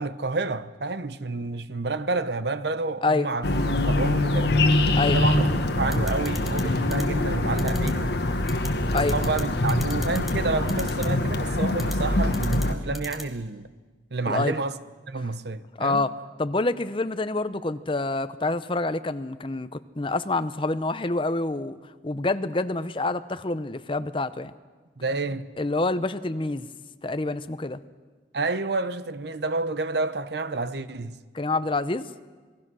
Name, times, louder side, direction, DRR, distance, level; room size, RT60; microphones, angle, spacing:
voice 1, 0.0-3.5 3.9-4.6 5.1-8.1 8.9-13.7 14.1-14.8 15.1-16.0 25.0-25.5 28.3-31.2, right 3 dB, 60° right, 0.9 m, -29 dB
sound 1, 3.4-12.7, left 1 dB, 60° left, 1.5 m, -24 dB
sound 2, 5.9-6.6 6.9-7.0 7.6-7.9 8.5-8.7 9.0-9.4 9.7-10.3 10.7-11.1 11.8-12.0 12.3-12.7 12.9-13.2, left 1 dB, ahead, 1.8 m, -37 dB
voice 2, 15.8-21.8 22.0-24.5 25.6-26.7 27.0-27.8 31.3-32.1, left 2 dB, 30° left, 0.7 m, -27 dB
27.5 x 19.5 x 6.3 m
head